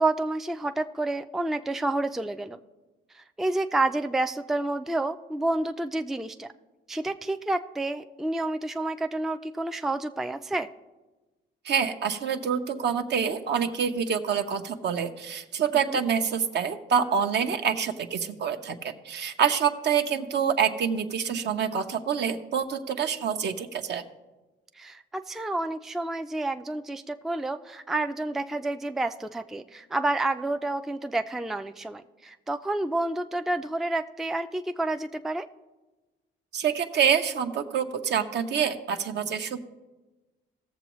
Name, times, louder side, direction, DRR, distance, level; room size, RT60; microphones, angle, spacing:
voice 1, 0.0-2.6 3.1-6.5 6.9-10.7 15.9-16.0 24.8-35.5, right 2 dB, ahead, 7 dB, 0.4 m, -29 dB
voice 2, 11.6-24.0 36.5-39.6, right 7 dB, 60° right, 7 dB, 0.8 m, -26 dB
17.0 x 7.0 x 3.1 m, 1.1 s
cardioid pair, 90°, 20 cm